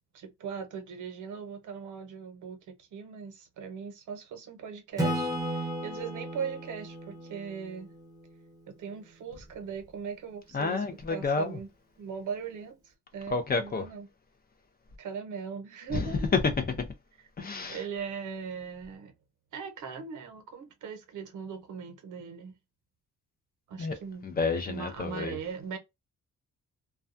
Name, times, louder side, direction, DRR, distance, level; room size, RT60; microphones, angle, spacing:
voice 1, 0.1-7.9 8.8-11.7 12.0-14.1 15.0-16.3 17.7-19.1 19.5-22.5 23.7-24.3 24.7-25.8, right 6 dB, 80° right, 0.8 m, -39 dB
Acoustic guitar / Strum, 5.0-8.5, right 1 dB, 10° right, 0.7 m, -34 dB
voice 2, 10.5-11.6 13.3-13.8 15.9-16.9 17.4-17.8 23.8-23.9 24.2-25.4, left 4 dB, 30° left, 0.5 m, -29 dB
2.3 x 2.2 x 2.5 m
wide cardioid pair, 180°, 30 cm